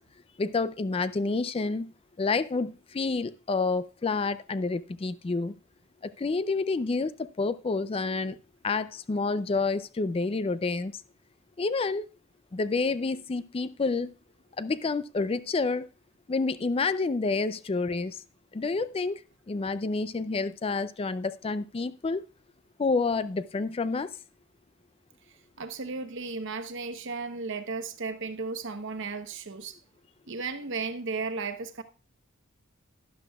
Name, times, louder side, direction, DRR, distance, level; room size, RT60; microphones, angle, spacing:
voice 1, 0.4-1.9 2.2-5.5 6.0-7.1 7.4-8.4 8.6-10.9 11.6-12.1 12.5-14.1 14.6-15.9 16.3-18.2 18.5-19.2 19.5-22.2 22.8-24.1, left 3 dB, 25° left, 0.4 m, -29 dB
voice 2, 25.3-29.8 30.3-31.8, right 4 dB, 60° right, 0.9 m, -35 dB
12.0 x 11.0 x 2.3 m
head